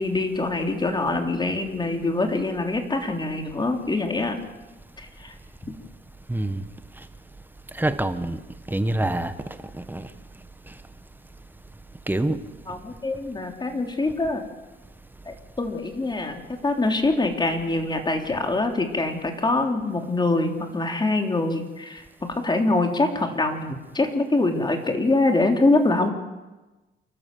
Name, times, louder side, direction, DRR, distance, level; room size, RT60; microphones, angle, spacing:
voice 1, 0.0-4.4 5.0-5.3 12.7-14.5 15.2-26.1, left 2 dB, 20° left, 3 dB, 3.4 m, -24 dB
voice 2, 6.3-6.6 7.7-8.4 8.7-9.3 9.8-10.1 12.1-12.4, right 1 dB, 10° right, 9 dB, 1.5 m, -25 dB
28.5 x 12.5 x 7.8 m, 1.1 s
cardioid pair, 90°, 20 cm